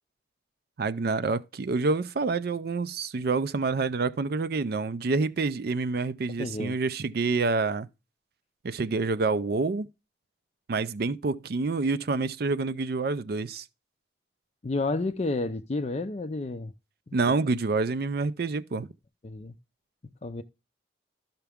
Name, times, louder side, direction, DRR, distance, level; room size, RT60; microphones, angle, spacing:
voice 1, 0.8-7.9 8.6-9.9 10.7-13.7 17.1-18.9, right 3 dB, 55° right, 0.4 m, -27 dB
voice 2, 6.3-6.8 14.6-16.7 17.1-17.2 19.2-19.5 20.2-20.4, left 2 dB, 35° left, 0.4 m, -31 dB
12.5 x 5.8 x 3.5 m
head